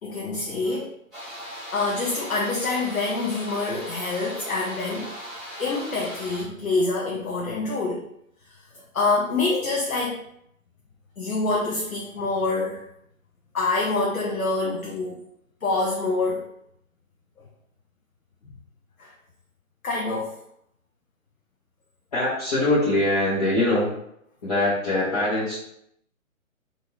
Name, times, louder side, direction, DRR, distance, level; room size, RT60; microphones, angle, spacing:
voice 1, 0.0-0.9 1.7-5.1 5.6-8.0 8.5-10.2 11.2-12.8 13.5-15.2 15.6-16.5 18.4-18.5 19.0-19.1 19.8-20.3, left 3 dB, 85° left, -2 dB, 0.7 m, -26 dB
sound 1, 1.1-6.4, equal, ahead, 0.3 m, -38 dB
voice 2, 22.1-24.0 24.4-25.5, left 1 dB, 30° left, -11 dB, 0.9 m, -22 dB
2.6 x 2.5 x 3.0 m, 0.74 s
figure-of-eight pair, 135°, 41 cm